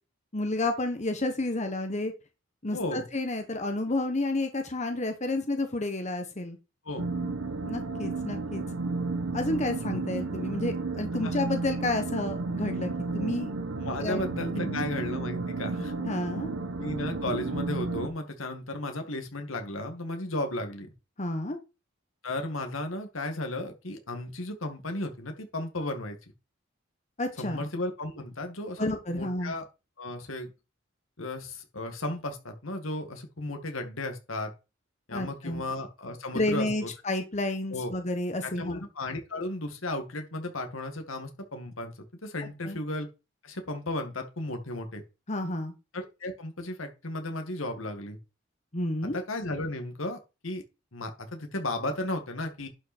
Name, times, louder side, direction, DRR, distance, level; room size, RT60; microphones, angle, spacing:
voice 1, 0.3-2.1 2.6-6.6 7.6-8.6 9.3-13.5 14.0-14.3 14.5-14.8 16.0-16.5 21.2-21.6 27.2-27.6 28.8-29.5 35.1-35.6 36.3-38.8 42.6-42.8 45.3-45.7 48.7-49.2, left 2 dB, 35° left, 6 dB, 1.3 m, -30 dB
voice 2, 2.7-3.1 6.9-7.0 11.2-11.3 13.8-15.9 16.8-20.9 22.2-26.2 27.4-29.7 30.0-30.5 31.2-34.5 35.1-36.9 37.7-37.9 38.4-41.9 42.2-43.1 43.4-45.0 45.9-48.2 49.0-50.6 50.9-52.7, left 2 dB, 85° left, 5 dB, 2.2 m, -34 dB
sound 1, 7.0-18.1, right 3 dB, 85° right, 1.2 m, -32 dB
11.0 x 5.6 x 4.4 m, 0.28 s
head